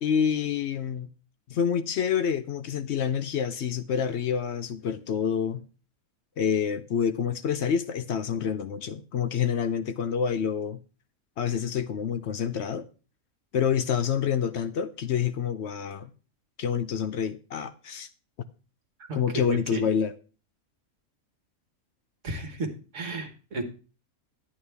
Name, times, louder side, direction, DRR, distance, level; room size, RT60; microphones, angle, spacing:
voice 1, 0.0-1.1 1.5-5.6 6.4-10.8 11.4-12.9 13.5-16.1 16.6-18.1 19.1-20.1, left 7 dB, 60° left, 0.7 m, -27 dB
voice 2, 19.0-19.9 22.2-23.6, right 2 dB, 55° right, 1.6 m, -34 dB
11.0 x 8.8 x 3.4 m
omnidirectional pair, 1.5 m